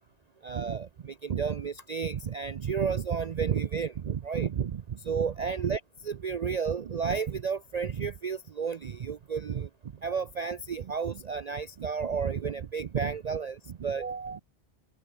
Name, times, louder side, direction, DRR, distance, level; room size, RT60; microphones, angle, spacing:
voice 1, 0.4-9.7 10.0-14.4, right 6 dB, 65° right, 0.4 m, -32 dB
omnidirectional pair, 1.4 m